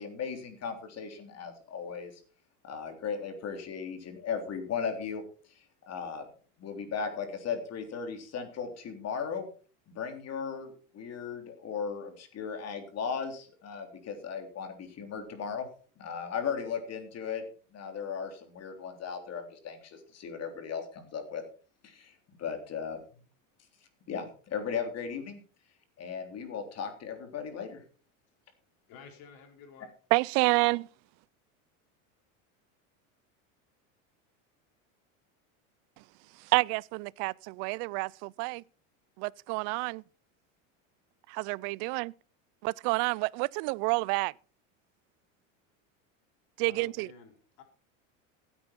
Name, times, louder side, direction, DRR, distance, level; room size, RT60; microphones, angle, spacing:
voice 1, 0.0-2.2 2.6-6.3 6.6-9.5 9.9-15.7 16.0-17.4 17.7-21.4 21.8-23.2 23.6-27.9, left 6 dB, 40° left, 3.5 m, -37 dB
voice 2, 28.9-29.9 46.6-47.6, left 6 dB, 60° left, 4.3 m, -52 dB
voice 3, 30.1-30.9 36.5-38.6 39.2-40.0 41.3-42.1 42.6-44.3 46.6-47.1, right 26 dB, 55° right, 0.5 m, -29 dB
15.5 x 9.1 x 4.4 m
supercardioid pair, 105°, 39 cm